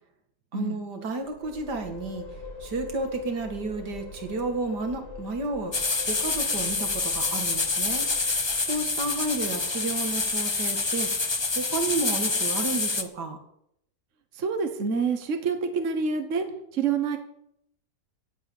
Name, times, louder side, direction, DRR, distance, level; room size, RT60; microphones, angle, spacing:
voice 1, 0.5-2.2 2.6-8.1 8.6-11.1 11.6-13.4, right 3 dB, 75° right, 5 dB, 2.6 m, -32 dB
sound 1, 1.2-9.1, left 4 dB, 65° left, 5.4 m, -43 dB
sound 2, 5.7-13.0, left 3 dB, 25° left, 0.6 m, -27 dB
voice 2, 14.4-16.4 16.7-17.2, right 5 dB, 50° right, 6 dB, 1.6 m, -27 dB
16.5 x 8.5 x 7.3 m, 0.76 s
omnidirectional pair, 1.8 m